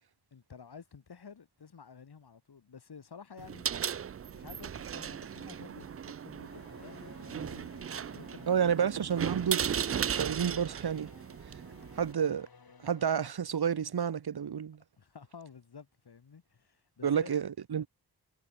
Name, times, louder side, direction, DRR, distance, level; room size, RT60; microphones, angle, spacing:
voice 1, 0.3-3.7 4.3-8.9 15.0-17.4, left 6 dB, 85° left, 4.8 m, -52 dB
Heavy Metal Door (Far Away), 3.4-12.1, right 8 dB, 40° right, 0.4 m, -37 dB
sound 1, 6.4-13.3, left 5 dB, 70° left, 6.1 m, -57 dB
voice 2, 8.5-9.6 10.1-11.1 12.0-12.5 12.8-14.8 17.0-17.9, right 8 dB, 80° right, 1.3 m, -30 dB
wide cardioid pair, 90°, 38 cm